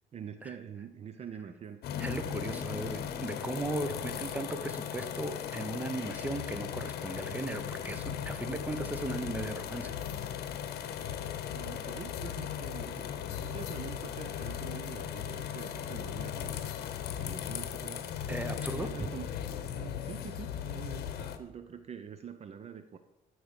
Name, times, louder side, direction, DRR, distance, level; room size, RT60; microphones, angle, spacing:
voice 1, 0.1-1.8 11.5-16.6 17.2-18.0 18.8-19.3 19.7-23.0, right 7 dB, 40° right, 9 dB, 0.6 m, -45 dB
sound 1, 1.8-21.4, left 9 dB, 70° left, 0.9 m, -37 dB
voice 2, 2.0-10.0 10.3-10.6 18.3-19.1, right 2 dB, 10° right, 8 dB, 0.9 m, -37 dB
12.0 x 4.8 x 6.7 m, 0.99 s
cardioid pair, 110°, 17 cm